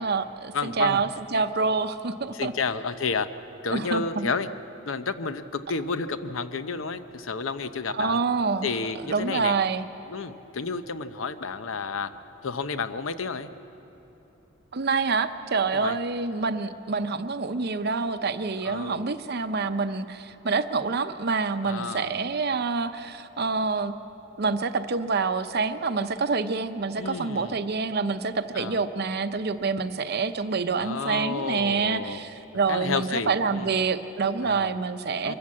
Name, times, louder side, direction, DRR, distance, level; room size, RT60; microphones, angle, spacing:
voice 1, 0.0-2.5 3.7-4.3 7.9-8.7 9.0-9.9 14.7-24.0 24.4-35.3, right 4 dB, 55° right, 9 dB, 0.7 m, -27 dB
voice 2, 0.5-1.0 1.3-1.4 2.3-3.3 3.6-4.5 4.9-8.2 8.6-9.6 10.1-12.1 12.4-13.5 15.7-16.0 18.6-19.1 21.6-22.2 27.0-27.6 28.5-28.8 30.8-32.2 32.7-33.7 34.4-34.7 35.2-35.3, left 4 dB, 85° left, 11 dB, 0.8 m, -31 dB
24.5 x 14.0 x 8.5 m, 3.0 s
head